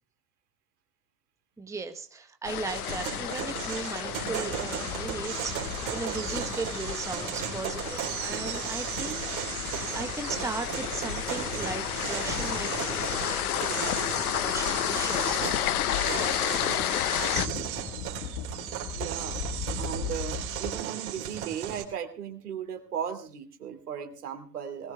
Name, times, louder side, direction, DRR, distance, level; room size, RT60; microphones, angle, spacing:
voice 1, 1.6-17.6, right 4 dB, 5° right, 6 dB, 1.1 m, -38 dB
Mena Creek Paronella Park Walk, 2.4-17.5, left 13 dB, 65° left, 0.8 m, -31 dB
sound 1, 2.7-21.8, right 10 dB, 50° right, 3.8 m, -35 dB
sound 2, 4.5-8.4 15.3-20.7, left 5 dB, 40° left, 1.6 m, -39 dB
voice 2, 18.9-19.4 19.8-24.9, right 8 dB, 70° right, 6 dB, 2.5 m, -36 dB
20.5 x 19.5 x 2.3 m, 0.40 s
figure-of-eight pair, 80°, 48 cm